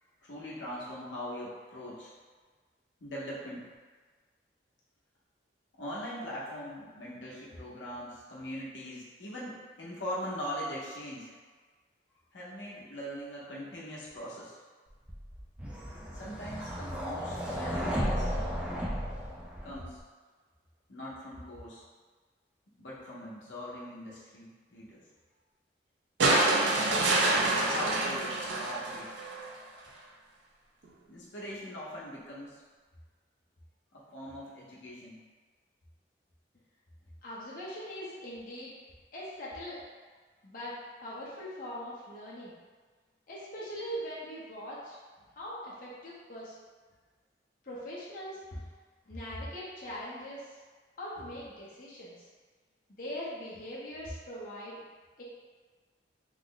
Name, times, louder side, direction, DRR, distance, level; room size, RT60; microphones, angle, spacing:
voice 1, 0.2-2.1 3.0-3.7 5.8-11.3 12.3-14.6 16.1-18.5 19.6-20.0 20.9-21.8 22.8-25.0 26.7-28.4 28.6-29.1 31.1-32.6 33.9-35.2 48.5-48.6 49.3-49.4, equal, 90° left, -6 dB, 0.8 m, -41 dB
sound 1, 15.1-20.0, equal, 5° right, 0.4 m, -34 dB
sound 2, 26.2-29.5 30.8-30.9, right 2 dB, 80° right, 0.5 m, -27 dB
voice 2, 37.2-38.7 39.1-39.8 40.4-40.7 41.0-42.5 43.3-45.0 45.4-46.5 47.6-48.4 49.1-50.5 51.0-52.2 53.0-54.8 55.2-55.3, equal, 50° left, -7 dB, 0.7 m, -41 dB
3.2 x 2.1 x 3.8 m, 1.4 s
head